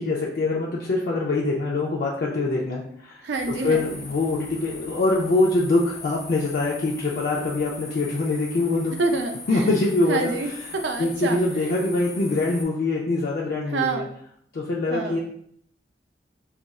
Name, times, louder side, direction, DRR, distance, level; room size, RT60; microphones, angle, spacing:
voice 1, 0.0-8.9 9.5-10.3 11.0-14.1 14.5-15.2, left 2 dB, 55° left, -3 dB, 0.4 m, -24 dB
voice 2, 3.2-4.0 9.0-9.8 10.1-11.7 13.7-14.1 14.9-15.2, right 3 dB, 85° right, 4 dB, 0.5 m, -27 dB
sound 1, 3.3-12.6, left 3 dB, 75° left, 0.8 m, -41 dB
2.4 x 2.3 x 4.0 m, 0.66 s
head